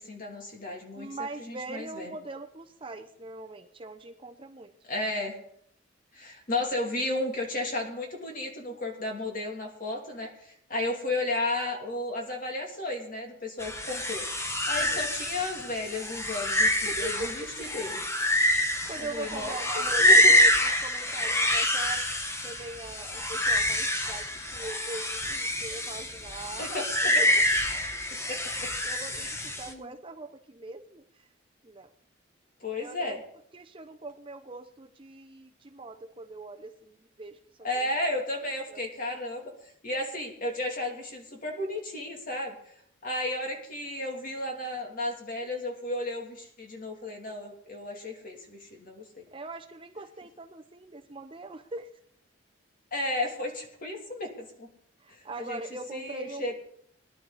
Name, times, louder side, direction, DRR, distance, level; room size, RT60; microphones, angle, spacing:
voice 1, 0.0-1.1 1.4-2.1 4.8-5.4 6.1-14.2 14.7-18.0 19.0-19.6 20.0-20.3 26.6-27.2 28.3-28.7 29.1-29.4 29.7-29.9 32.6-33.2 37.6-39.5 39.8-42.5 43.0-49.2 52.9-54.7 55.1-55.6 55.9-56.5, left 2 dB, 40° left, 1 dB, 2.9 m, -33 dB
voice 2, 0.9-4.7 14.8-15.0 16.9-17.5 18.5-20.5 20.8-22.0 22.4-26.8 27.2-27.3 28.5-31.3 31.6-31.9 32.8-33.2 33.5-37.4 37.7-37.9 38.7-38.8 49.3-51.9 55.0-56.5, right 2 dB, 25° right, 6 dB, 0.8 m, -41 dB
sound 1, 13.6-29.7, left 1 dB, 15° left, 1.1 m, -26 dB
20.0 x 11.0 x 4.2 m, 0.67 s
head